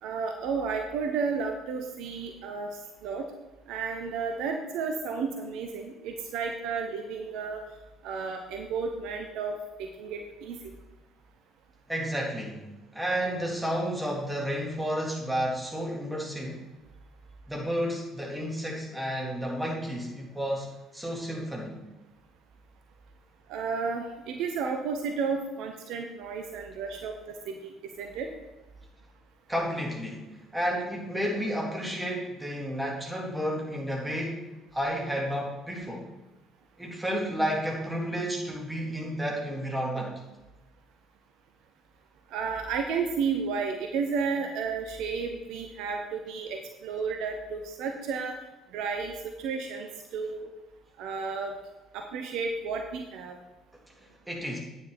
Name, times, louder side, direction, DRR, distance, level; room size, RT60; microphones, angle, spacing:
voice 1, 0.0-3.3 3.7-7.6 8.0-9.5 9.8-10.6 23.5-28.3 42.3-48.4 48.7-50.5 51.0-51.6 51.9-53.4, right 5 dB, 60° right, 4 dB, 0.9 m, -32 dB
voice 2, 11.9-16.6 17.5-21.8 29.5-34.5 34.7-36.1 36.8-40.1 54.0-54.6, equal, 10° right, -2 dB, 3.6 m, -31 dB
10.0 x 9.2 x 4.3 m, 1.1 s
figure-of-eight pair, 50°, 0 cm